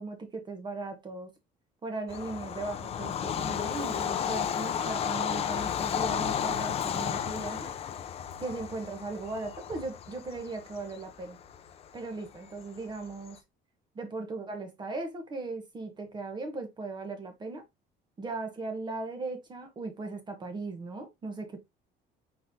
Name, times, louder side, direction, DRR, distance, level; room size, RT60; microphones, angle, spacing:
voice 1, 0.0-1.3 1.8-7.7 8.4-11.4 11.9-13.4 13.9-17.6 18.2-21.6, right 3 dB, 25° right, 1.0 m, -38 dB
Bird vocalization bird call bird song / Train, 2.1-13.3, left 8 dB, 35° left, 0.5 m, -33 dB
4.3 x 4.0 x 2.7 m
cardioid pair, 145°, 18 cm